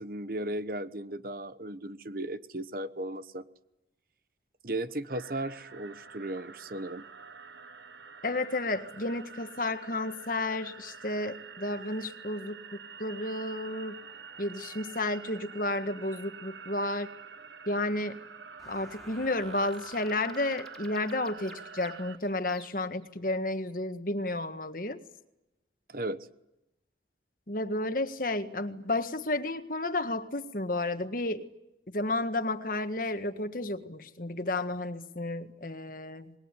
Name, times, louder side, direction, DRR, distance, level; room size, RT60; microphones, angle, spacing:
voice 1, 0.0-3.4 4.6-7.1 25.9-26.3, right 1 dB, 50° right, 13 dB, 1.1 m, -36 dB
sound 1, 5.1-22.2, right 6 dB, 80° right, 1.6 m, -47 dB
voice 2, 8.2-14.0 14.4-17.1 17.7-18.2 18.7-25.0 27.5-31.5 31.9-36.3, left 2 dB, 50° left, 9 dB, 1.7 m, -32 dB
sound 2, 18.6-23.1, left 1 dB, ahead, 3.9 m, -53 dB
27.0 x 21.5 x 9.8 m, 0.91 s
head